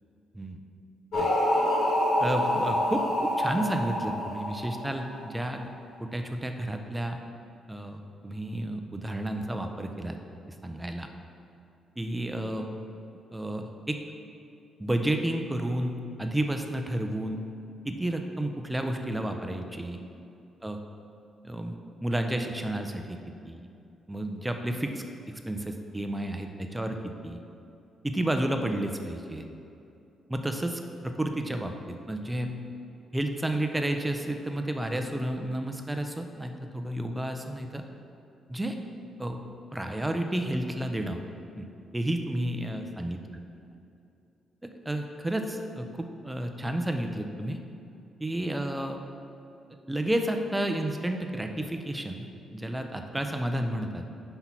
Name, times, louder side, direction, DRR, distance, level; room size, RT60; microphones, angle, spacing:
sound 1, 1.1-5.4, left 1 dB, 80° left, 1.5 m, -27 dB
voice 1, 2.2-5.7 6.0-7.2 7.7-10.2 10.5-11.1 12.0-12.7 13.3-14.0 14.8-17.4 17.8-20.0 20.6-20.8 21.4-21.7 22.0-23.2 23.4-23.7 24.1-27.0 27.2-27.4 28.0-29.5 30.3-32.5 33.1-37.8 38.5-38.8 39.2-39.4 39.7-41.2 41.6-41.7 41.9-43.2 44.6-47.6 48.2-49.0 49.9-54.0, right 1 dB, 10° right, 5 dB, 0.4 m, -31 dB
5.9 x 4.4 x 5.7 m, 2.7 s
cardioid pair, 145°, 0 cm